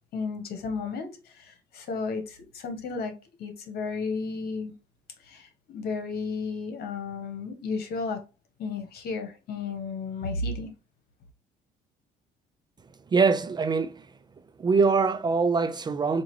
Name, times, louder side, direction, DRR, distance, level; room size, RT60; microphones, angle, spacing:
voice 1, 0.1-3.1 3.4-4.7 5.2-8.2 8.6-10.7, left 4 dB, 65° left, 1.3 m, -33 dB
voice 2, 13.1-14.1 14.6-16.2, right 4 dB, 25° right, 0.4 m, -23 dB
4.6 x 2.5 x 3.1 m
cardioid pair, 110°, 17 cm